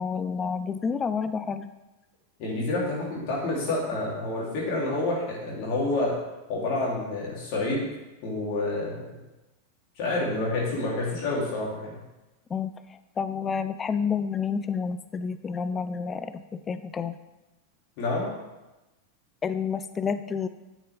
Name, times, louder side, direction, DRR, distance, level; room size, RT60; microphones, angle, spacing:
voice 1, 0.0-1.7 12.5-17.2 19.4-20.5, left 6 dB, 20° left, 11 dB, 0.4 m, -29 dB
voice 2, 2.4-6.1 6.5-7.9 8.2-9.1 10.0-11.9 18.0-18.3, left 2 dB, 45° left, -4 dB, 3.6 m, -28 dB
9.4 x 8.2 x 3.7 m, 1.1 s
figure-of-eight pair, 90°, 0 cm